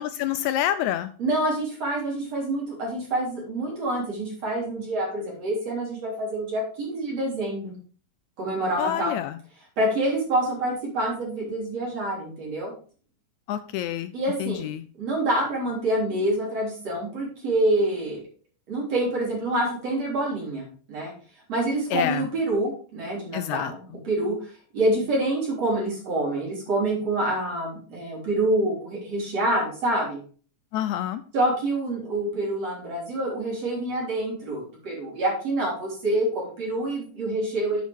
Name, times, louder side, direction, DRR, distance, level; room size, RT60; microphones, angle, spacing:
voice 1, 0.0-1.1 8.8-9.4 13.5-14.1 14.4-14.8 21.9-22.3 23.3-23.7 30.7-31.2, left 12 dB, 80° left, 12 dB, 1.8 m, -27 dB
voice 2, 1.2-7.7 8.4-9.1 9.8-12.7 14.1-14.7 15.0-18.2 18.7-21.1 21.5-24.3 24.7-30.2 31.3-37.8, right 1 dB, 50° right, -4 dB, 4.8 m, -26 dB
9.3 x 8.4 x 3.5 m, 0.40 s
omnidirectional pair, 3.6 m